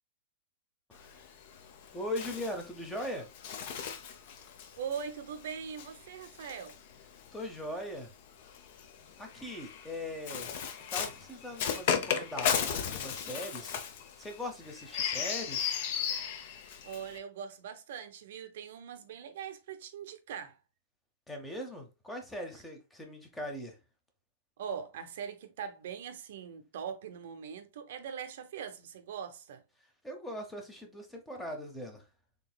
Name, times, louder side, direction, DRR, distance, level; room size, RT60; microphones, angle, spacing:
Bird, 0.9-7.5 8.4-17.2, left 8 dB, 45° left, 0.6 m, -36 dB
voice 1, 0.9-1.3 1.9-3.3 7.3-8.1 9.2-10.5 10.9-13.8 14.2-15.8 21.3-23.8 30.0-32.1, left 1 dB, 5° left, 0.6 m, -40 dB
voice 2, 4.8-6.7 16.8-20.6 24.6-29.6, right 7 dB, 60° right, 0.6 m, -41 dB
3.9 x 3.5 x 2.2 m
supercardioid pair, 170°, 0 cm